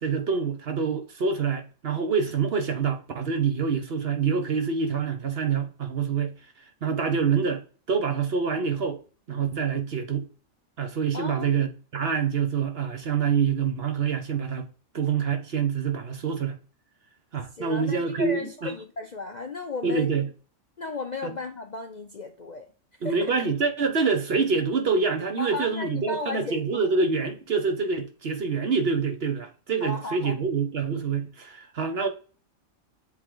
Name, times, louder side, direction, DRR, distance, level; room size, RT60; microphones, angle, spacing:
voice 1, 0.0-6.3 6.8-9.0 9.3-10.3 10.8-14.7 14.9-16.6 17.3-18.7 19.8-20.3 21.2-21.3 23.0-32.1, right 5 dB, 50° right, 1.1 m, -26 dB
voice 2, 11.1-11.5 17.6-20.1 20.8-22.6 23.0-23.3 25.4-26.8 29.8-30.4, left 3 dB, 45° left, 0.6 m, -35 dB
7.7 x 3.3 x 3.8 m
omnidirectional pair, 1.4 m